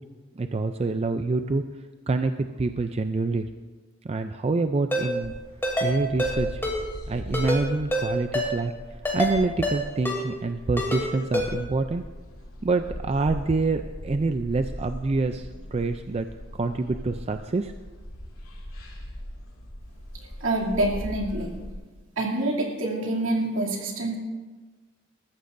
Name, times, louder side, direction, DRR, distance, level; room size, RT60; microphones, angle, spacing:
voice 1, 0.4-1.6 2.1-3.5 4.0-5.3 5.8-6.6 7.1-8.7 9.1-12.0 12.6-16.3 16.5-17.7, right 3 dB, 30° right, 8 dB, 0.4 m, -26 dB
Ringtone, 4.9-5.0 5.6-5.9 6.2-6.3 6.6-6.8 7.3-7.6 7.9-8.0 8.3-8.5 9.0-9.3 9.6-9.8 10.0-10.2 10.8-11.0 11.3-11.5, left 1 dB, 10° left, 2.8 m, -25 dB
sound 1, 5.2-21.7, equal, 90° left, 2.4 m, -40 dB
voice 2, 20.1-21.6 22.2-24.2, right 1 dB, 70° right, -1 dB, 2.7 m, -27 dB
19.5 x 14.5 x 2.6 m, 1.3 s
head